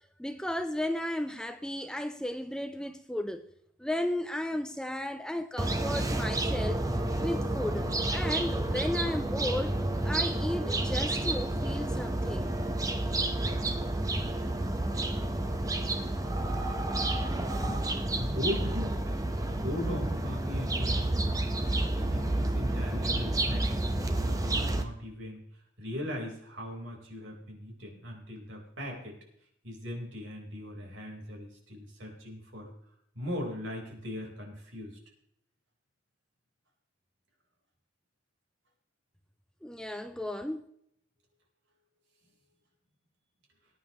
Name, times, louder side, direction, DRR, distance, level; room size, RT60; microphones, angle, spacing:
voice 1, 0.2-3.4 3.8-6.9 7.2-9.8 10.0-12.5 39.6-40.6, left 1 dB, 5° left, 0.5 m, -34 dB
sound 1, 5.6-24.8, right 1 dB, 15° right, 0.9 m, -30 dB
voice 2, 16.9-19.2 19.5-21.2 22.0-25.4 25.8-29.2 29.6-32.7 33.1-35.0, left 1 dB, 65° right, 4.0 m, -39 dB
19.5 x 9.5 x 3.0 m
head